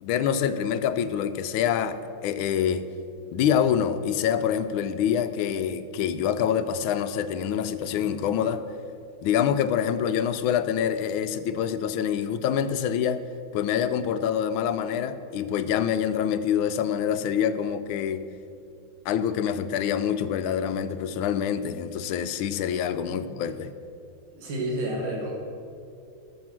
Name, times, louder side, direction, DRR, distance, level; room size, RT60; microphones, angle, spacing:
voice 1, 0.0-2.9 3.3-8.6 9.2-13.2 13.5-18.3 19.0-23.7, left 8 dB, 80° left, 11 dB, 1.4 m, -26 dB
voice 2, 24.3-25.3, right 1 dB, 70° right, -3 dB, 2.5 m, -30 dB
13.5 x 6.4 x 6.1 m, 2.5 s
omnidirectional pair, 2.3 m